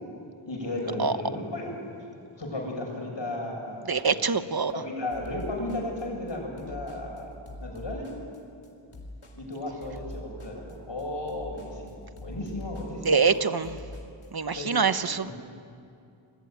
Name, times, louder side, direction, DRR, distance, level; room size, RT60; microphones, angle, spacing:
voice 1, 0.4-1.7 2.4-4.2 4.7-7.3 7.6-8.1 9.3-13.3 14.5-14.8 15.2-15.3, left 2 dB, 60° left, 1 dB, 7.7 m, -34 dB
voice 2, 3.9-4.8 13.0-13.8 14.3-15.3, right 5 dB, 50° right, 11 dB, 1.1 m, -25 dB
sound 1, 5.1-14.3, equal, 80° left, 4.6 m, -43 dB
28.0 x 21.5 x 9.5 m, 2.5 s
wide cardioid pair, 65°, 48 cm